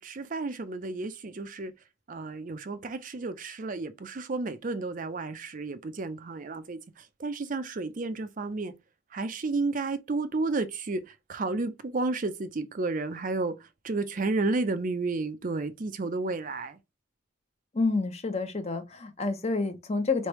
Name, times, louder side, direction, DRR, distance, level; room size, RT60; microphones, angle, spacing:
voice 1, 0.0-1.7 2.1-8.7 9.1-16.8, right 3 dB, 40° right, 0.5 m, -32 dB
voice 2, 17.7-20.3, left 3 dB, 30° left, 0.8 m, -29 dB
4.4 x 3.2 x 3.0 m
head